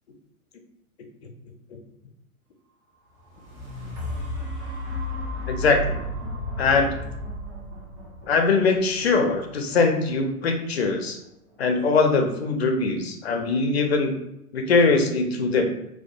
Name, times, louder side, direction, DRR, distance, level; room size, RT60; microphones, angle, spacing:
sound 1, 3.2-11.2 11.8-11.9, left 1 dB, 20° right, 0.3 m, -34 dB
voice 1, 5.5-6.0 6.6-7.0 8.2-11.2 11.6-14.1 14.5-15.7, left 4 dB, 45° left, 4 dB, 0.4 m, -22 dB
2.2 x 2.1 x 2.6 m, 0.83 s
figure-of-eight pair, 110°, 44 cm